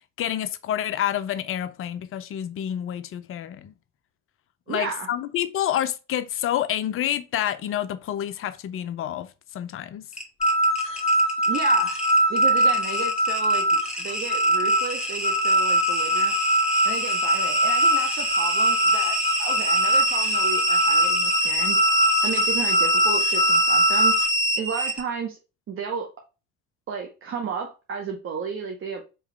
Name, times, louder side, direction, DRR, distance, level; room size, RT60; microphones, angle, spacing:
voice 1, 0.2-3.7 4.7-9.3 9.5-10.1, left 11 dB, 35° left, 0.5 m, -28 dB
voice 2, 4.7-5.1 11.5-12.0 12.3-16.4 16.8-21.8 22.2-24.3 24.6-25.4 25.7-26.1 26.9-29.0, right 6 dB, 30° right, 0.8 m, -33 dB
sound 1, 10.1-25.0, equal, ahead, 1.5 m, -26 dB
sound 2, 10.4-24.3, right 1 dB, 15° left, 1.3 m, -22 dB
4.8 x 3.0 x 3.3 m
figure-of-eight pair, 65°, 41 cm